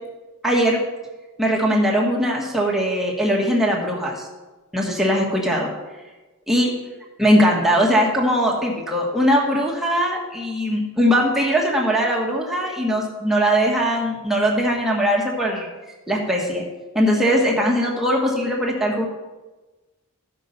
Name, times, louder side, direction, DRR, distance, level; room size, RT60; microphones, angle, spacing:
voice 1, 0.4-0.8 1.4-4.3 4.7-5.7 6.5-6.7 7.2-15.7 16.1-16.6 16.9-19.1, equal, ahead, -3 dB, 1.4 m, -20 dB
13.5 x 5.4 x 5.5 m, 1.2 s
head